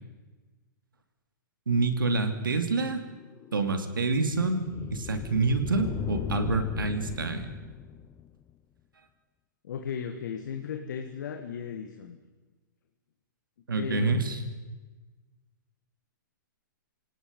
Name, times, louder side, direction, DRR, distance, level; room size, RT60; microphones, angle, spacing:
voice 1, 1.7-3.0 3.5-7.5 13.7-14.4, right 3 dB, 85° right, 7 dB, 2.7 m, -27 dB
sound 1, 3.1-8.5, left 12 dB, 20° left, 0.7 m, -38 dB
voice 2, 9.6-12.2 13.7-14.2, left 7 dB, 65° left, 5 dB, 1.9 m, -36 dB
27.5 x 18.0 x 5.4 m, 1.3 s
hypercardioid pair, 125°, 11 cm